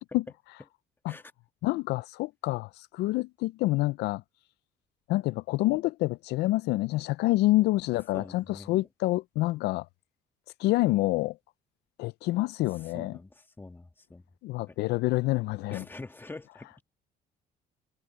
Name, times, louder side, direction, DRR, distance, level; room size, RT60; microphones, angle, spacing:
voice 1, 1.6-4.2 5.1-9.9 10.6-11.4 12.0-13.2 14.4-15.8, left 18 dB, 80° left, 0.4 m, -27 dB
voice 2, 8.1-8.9 12.8-14.2 14.7-14.8 15.7-16.8, left 2 dB, 10° left, 1.5 m, -45 dB
cardioid pair, 110°, 17 cm